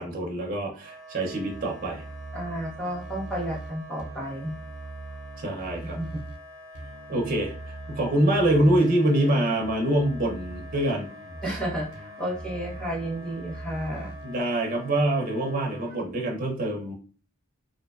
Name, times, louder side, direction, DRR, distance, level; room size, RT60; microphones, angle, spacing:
voice 1, 0.0-2.0 5.4-6.0 7.1-11.1 11.5-11.6 14.2-16.9, right 1 dB, 40° right, 0 dB, 0.5 m, -25 dB
Wind instrument woodwind instrument, 0.7-16.0, left 1 dB, 45° left, 1.0 m, -46 dB
sound 1, 1.5-6.4 6.7-14.3, right 2 dB, 90° right, 0.5 m, -41 dB
voice 2, 2.3-4.5 5.9-6.2 11.4-14.1, equal, 5° left, -4 dB, 0.7 m, -32 dB
2.5 x 2.1 x 2.3 m, 0.38 s
head